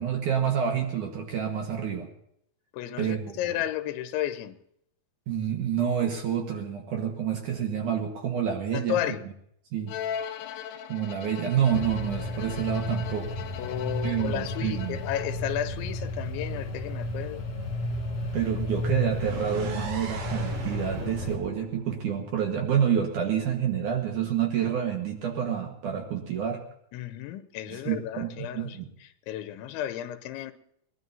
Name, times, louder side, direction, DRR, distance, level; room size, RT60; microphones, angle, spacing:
voice 1, 0.0-2.1 3.0-3.4 5.3-9.0 9.7-9.9 10.9-13.4 14.0-15.0 18.3-26.6 27.7-28.9, right 8 dB, 65° right, 2.1 m, -28 dB
voice 2, 2.7-4.6 8.7-9.2 13.6-17.4 26.9-28.8 29.3-30.5, left 12 dB, 90° left, 3.2 m, -33 dB
Bowed string instrument, 9.9-15.6, left 9 dB, 75° left, 2.8 m, -39 dB
sound 1, 11.7-21.4, left 1 dB, 40° left, 2.5 m, -32 dB
sound 2, 19.2-23.0, right 5 dB, 85° right, 4.9 m, -41 dB
22.0 x 19.0 x 2.7 m
omnidirectional pair, 5.3 m